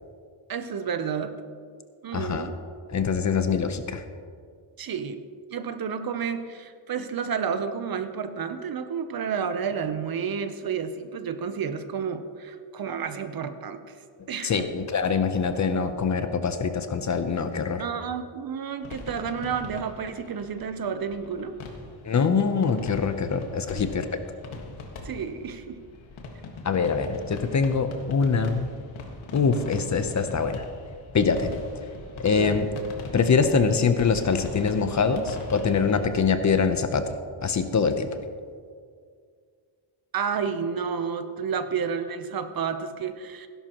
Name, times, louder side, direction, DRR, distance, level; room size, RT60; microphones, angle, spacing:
voice 1, 0.5-1.4 2.0-2.6 4.8-5.2 5.5-13.8 14.3-14.7 17.8-21.5 23.3-23.4 23.7-24.0 25.0-25.8 32.3-32.7 40.1-43.5, right 6 dB, 50° right, 9 dB, 0.8 m, -31 dB
voice 2, 2.1-2.5 2.9-4.0 14.4-17.8 22.1-24.0 26.6-28.6 29.3-30.6 31.1-31.5 32.2-32.7 33.1-37.0 37.4-38.1, left 5 dB, 40° left, 9 dB, 0.8 m, -24 dB
sound 1, 18.8-36.0, left 3 dB, 85° left, 1.7 m, -41 dB
17.0 x 11.0 x 3.0 m, 2.1 s
cardioid pair, 125°, 47 cm